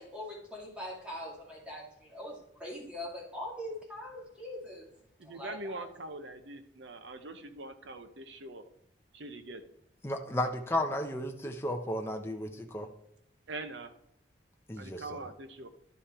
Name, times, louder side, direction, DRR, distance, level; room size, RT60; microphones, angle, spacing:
voice 1, 0.0-1.8 2.1-4.8 5.2-5.8, left 1 dB, 5° right, -3 dB, 2.3 m, -42 dB
voice 2, 5.2-8.6 9.1-9.6 13.5-13.9 14.8-15.7, right 2 dB, 70° right, 9 dB, 0.9 m, -43 dB
voice 3, 10.0-12.9 14.7-15.0, left 1 dB, 15° left, 3 dB, 0.7 m, -33 dB
11.5 x 5.3 x 4.3 m, 0.80 s
head